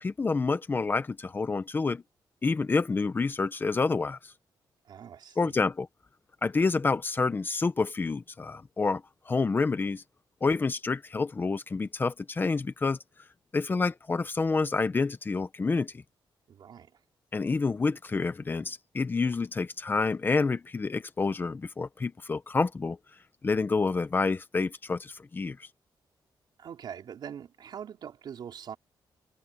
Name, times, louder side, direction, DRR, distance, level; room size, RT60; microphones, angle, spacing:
voice 1, 0.0-2.0 2.4-4.2 5.4-5.9 6.4-10.0 10.4-13.0 13.5-15.9 17.3-23.0 23.4-25.7, left 4 dB, 25° left, 1.0 m, -28 dB
voice 2, 4.8-5.6 16.5-16.9 26.6-28.8, right 8 dB, 65° right, 4.4 m, -43 dB
wide cardioid pair, 150°, 8 cm